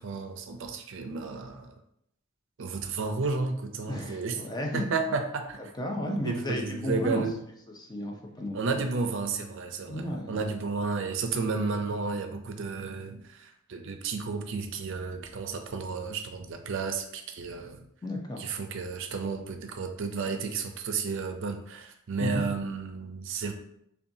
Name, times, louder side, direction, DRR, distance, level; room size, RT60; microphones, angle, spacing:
voice 1, 0.0-1.7 2.6-4.4 4.7-5.6 6.1-7.3 8.5-17.9 18.4-23.5, right 4 dB, 65° right, 6 dB, 0.5 m, -32 dB
voice 2, 3.9-4.9 5.6-7.3 7.7-8.9 9.9-10.4 18.0-18.5 22.2-22.5, left 1 dB, 20° left, 1 dB, 0.5 m, -33 dB
5.3 x 2.3 x 2.6 m, 0.75 s
head